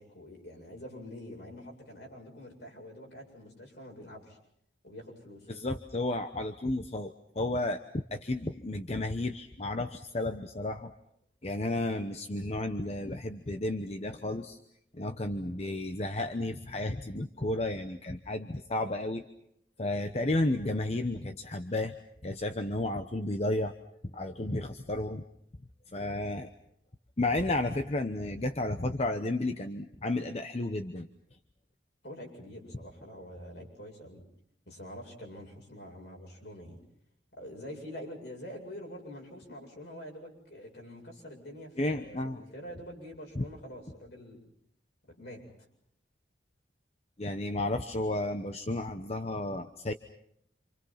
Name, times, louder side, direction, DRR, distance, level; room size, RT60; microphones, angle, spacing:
voice 1, 0.0-4.4 4.8-5.5 32.0-34.2 34.7-36.8 37.4-44.4 45.1-45.4, equal, 65° left, 1 dB, 8.0 m, -46 dB
voice 2, 5.5-7.8 8.1-10.9 11.4-14.6 14.9-19.2 19.8-22.0 22.2-23.7 24.1-25.2 25.9-26.5 27.2-31.1 41.8-42.4 43.4-43.5 47.2-49.9, left 2 dB, 35° left, 8 dB, 1.0 m, -32 dB
28.0 x 27.5 x 5.8 m, 0.72 s
head